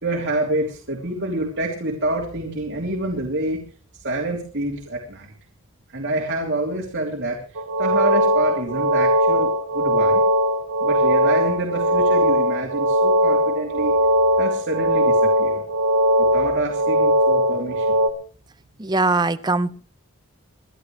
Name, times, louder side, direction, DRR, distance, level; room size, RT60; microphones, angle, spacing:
voice 1, 0.0-3.6 3.9-5.3 5.9-10.2 10.8-14.0 14.4-15.6 16.2-18.0, right 1 dB, 55° right, 0 dB, 3.0 m, -27 dB
sound 1, 7.6-18.1, equal, 85° right, 1.9 m, -19 dB
voice 2, 18.8-19.8, right 3 dB, 20° right, 11 dB, 0.6 m, -21 dB
28.0 x 11.5 x 3.2 m, 0.41 s
head